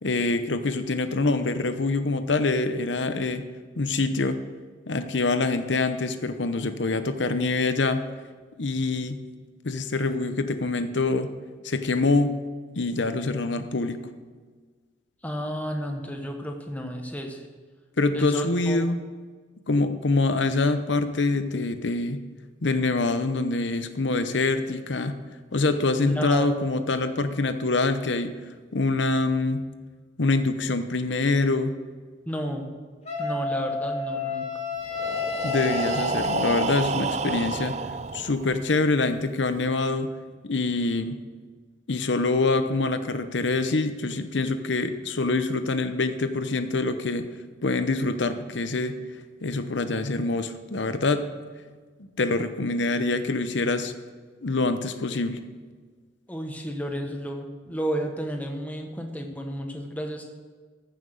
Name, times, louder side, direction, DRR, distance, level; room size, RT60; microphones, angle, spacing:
voice 1, 0.0-3.5 3.8-4.4 4.9-8.1 8.6-9.2 9.6-11.3 11.6-12.4 12.8-14.0 18.0-19.0 19.7-22.2 22.6-25.2 25.5-28.3 28.7-29.7 30.2-31.8 35.4-37.8 38.1-40.1 40.4-41.2 41.9-47.3 47.6-49.0 49.4-51.3 52.2-53.9 54.4-55.4, left 3 dB, 70° left, 10 dB, 0.8 m, -25 dB
voice 2, 15.2-17.4 18.1-18.8 26.0-26.5 32.3-32.7 33.2-34.5 56.3-60.3, equal, 10° left, 3 dB, 1.1 m, -32 dB
Wind instrument woodwind instrument, 33.1-37.0, left 4 dB, 35° left, 1.7 m, -30 dB
Breathing, 34.9-38.7, right 4 dB, 35° right, 0.4 m, -29 dB
14.5 x 6.0 x 6.5 m, 1.5 s
head